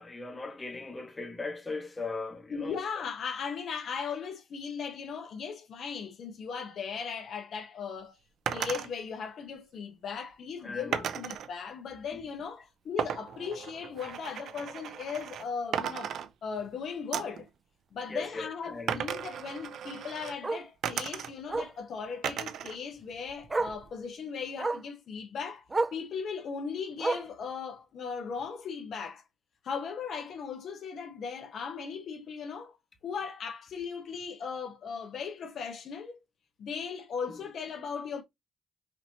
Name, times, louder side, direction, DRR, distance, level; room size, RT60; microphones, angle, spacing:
voice 1, 0.0-2.8 10.6-11.0 18.1-19.1, left 3 dB, 20° left, 1.6 m, -38 dB
voice 2, 2.5-8.2 8.5-16.1 16.4-17.5 17.9-25.6 25.9-29.2 29.6-32.8 33.0-36.2 36.6-38.2, left 6 dB, 65° left, 1.1 m, -38 dB
sound 1, 8.5-8.9 10.9-11.5 13.0-15.5 15.7-16.7 17.1-17.4 18.9-20.4 20.8-21.6 22.2-22.8 23.1-23.9, right 9 dB, 70° right, 0.5 m, -35 dB
Bark, 14.0-14.1 14.5-14.7 15.0-15.1 15.4-15.5 16.9-17.0 19.5-19.6 20.4-20.7 21.5-21.8 23.0-23.1 23.5-23.8 24.6-24.9 25.7-26.0 27.0-27.4 28.4-28.5, right 3 dB, 25° right, 0.4 m, -31 dB
5.7 x 2.8 x 2.9 m
cardioid pair, 90°, 0 cm